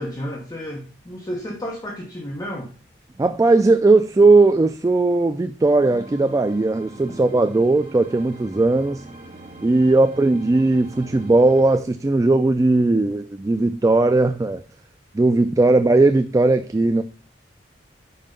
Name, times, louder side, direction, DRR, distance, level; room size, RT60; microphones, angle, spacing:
voice 1, 0.0-2.7 9.8-10.2, equal, 20° left, 1.0 m, -32 dB
voice 2, 3.2-9.0 9.6-14.6 15.1-17.0, right 2 dB, 20° right, 0.3 m, -18 dB
sound 1, 5.8-11.8, right 2 dB, 35° right, 2.0 m, -41 dB
5.5 x 5.1 x 5.2 m
head